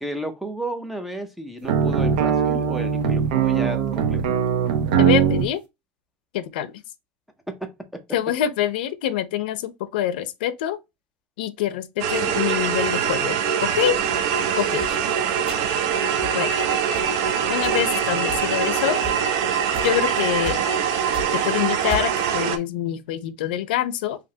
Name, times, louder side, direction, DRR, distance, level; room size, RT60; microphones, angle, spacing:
voice 1, 0.0-4.2 7.5-8.0, right 1 dB, ahead, 0.5 m, -32 dB
sound 1, 1.6-5.5, right 8 dB, 85° right, 1.0 m, -20 dB
voice 2, 5.0-5.6 6.3-6.8 8.1-10.8 11.4-14.0 14.5-15.0 16.3-16.6 17.5-19.0 19.8-20.7 21.3-24.2, left 11 dB, 80° left, 0.7 m, -25 dB
sound 2, 12.0-22.6, right 8 dB, 50° right, 0.6 m, -23 dB
sound 3, 14.8-15.0 15.5-15.8 16.2-16.4 16.9-17.1 17.6-17.8 18.3-18.7 19.0-19.2 19.7-20.0 20.4-20.7 21.0-21.4 21.9-22.2, left 4 dB, 20° right, 1.6 m, -34 dB
5.1 x 2.9 x 2.7 m
supercardioid pair, 180°, 5 cm